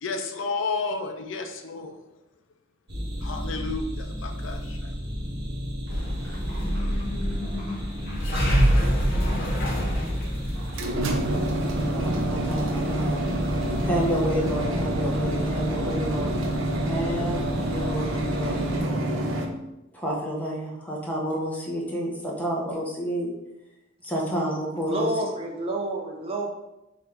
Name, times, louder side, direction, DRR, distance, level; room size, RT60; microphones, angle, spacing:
voice 1, 0.0-1.9 3.2-4.9, left 4 dB, 70° left, 5 dB, 0.4 m, -31 dB
sound 1, 2.9-18.8, equal, 60° right, 1.0 m, -34 dB
sound 2, 5.9-14.7, equal, 50° left, 0.9 m, -27 dB
sound 3, 10.5-19.5, right 1 dB, 80° right, 0.6 m, -27 dB
voice 2, 11.7-16.3 16.8-19.2 19.9-23.3 24.0-25.1, equal, 10° left, -4 dB, 0.8 m, -30 dB
voice 3, 24.9-26.5, right 2 dB, 30° right, 1 dB, 0.5 m, -29 dB
3.5 x 2.5 x 4.4 m, 0.92 s
head